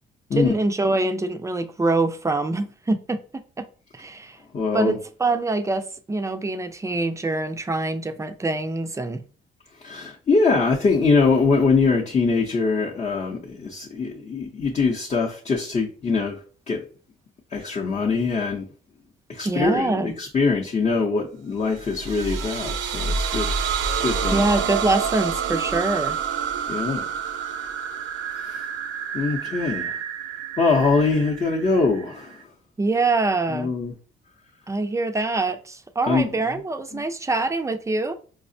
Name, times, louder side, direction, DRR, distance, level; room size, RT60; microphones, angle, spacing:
voice 1, 0.3-3.6 3.9-4.4 4.7-9.2 19.4-20.2 24.3-26.2 32.8-33.7 34.7-38.1, right 2 dB, 15° right, 0.4 m, -24 dB
voice 2, 4.5-5.0 9.8-16.4 16.7-16.8 17.5-18.7 19.3-23.6 24.0-24.4 26.7-27.0 28.4-28.6 29.1-30.0 30.6-32.3 33.5-33.9 36.0-36.4 36.9-37.0, left 4 dB, 35° left, 0.7 m, -23 dB
sound 1, 21.8-32.4, right 6 dB, 85° right, 0.5 m, -28 dB
4.8 x 2.0 x 2.6 m
cardioid pair, 90°, 20 cm